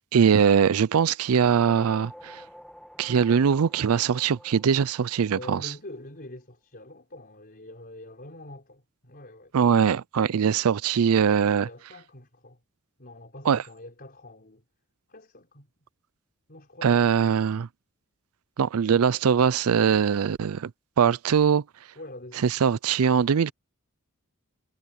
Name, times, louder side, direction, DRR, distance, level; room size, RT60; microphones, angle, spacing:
voice 1, 0.0-2.4 3.0-5.7 9.5-11.7 13.5-13.6 16.8-17.7 18.6-20.7 21.0-21.6 22.4-23.5, right 7 dB, 85° right, 0.4 m, -22 dB
sound 1, 1.3-5.9, equal, 5° left, 1.6 m, -49 dB
voice 2, 5.3-9.5 11.6-12.6 13.0-14.6 15.1-15.7 16.5-17.3 21.9-22.6, left 1 dB, 45° left, 4.8 m, -45 dB
head